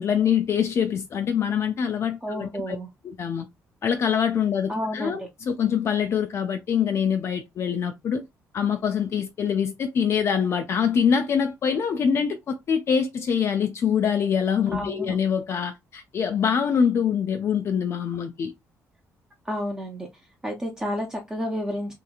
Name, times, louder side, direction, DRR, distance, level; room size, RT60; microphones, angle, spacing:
voice 1, 0.0-2.8 3.0-3.5 3.8-8.2 8.5-18.5, left 7 dB, 45° left, 0.3 m, -24 dB
voice 2, 2.2-2.9 4.7-5.3 14.7-15.1 19.5-20.1 20.4-21.9, equal, 10° right, 0.5 m, -30 dB
2.9 x 2.5 x 2.3 m
cardioid pair, 135°, 6 cm